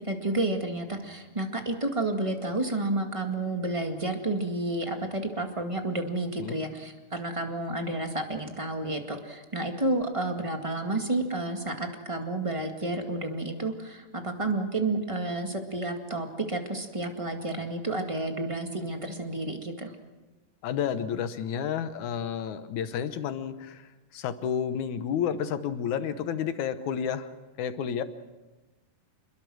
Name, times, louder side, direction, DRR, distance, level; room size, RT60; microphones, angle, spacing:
voice 1, 0.0-19.9, right 2 dB, 15° right, 4 dB, 1.4 m, -30 dB
voice 2, 20.6-27.3 27.6-28.0, left 8 dB, 70° left, 11 dB, 2.3 m, -31 dB
27.5 x 21.5 x 6.3 m, 1.2 s
omnidirectional pair, 3.7 m